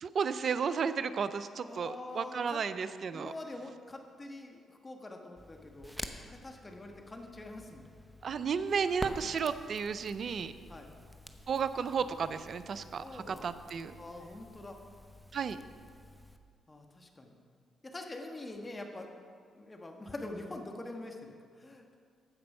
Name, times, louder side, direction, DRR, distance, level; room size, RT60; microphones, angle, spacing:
voice 1, 0.0-3.3 8.2-10.5 11.5-13.9 15.3-15.6, right 6 dB, 60° right, 13 dB, 0.5 m, -33 dB
voice 2, 1.5-2.6 3.1-7.9 10.7-10.9 13.0-13.5 13.8-14.8 16.7-17.4 17.8-19.1 19.5-22.0, left 2 dB, 25° left, 3 dB, 1.4 m, -45 dB
Crackle, 5.4-16.4, equal, ahead, 0.8 m, -48 dB
15.0 x 5.2 x 5.5 m, 2.1 s
supercardioid pair, 65°, 0 cm